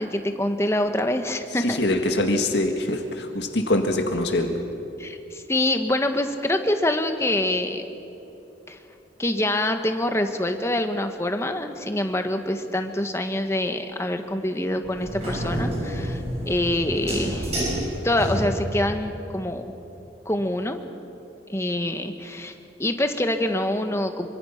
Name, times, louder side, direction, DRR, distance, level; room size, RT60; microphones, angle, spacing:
voice 1, 0.0-1.8 5.0-7.9 8.7-8.8 9.2-17.6 18.0-19.6 20.2-20.8 21.5-22.5 22.8-24.3, left 1 dB, 15° left, 7 dB, 1.3 m, -25 dB
voice 2, 1.6-4.6, left 1 dB, 70° left, 4 dB, 1.9 m, -24 dB
sound 1, 14.8-18.9, equal, 35° right, 6.2 m, -29 dB
26.5 x 24.5 x 5.9 m, 2.9 s
head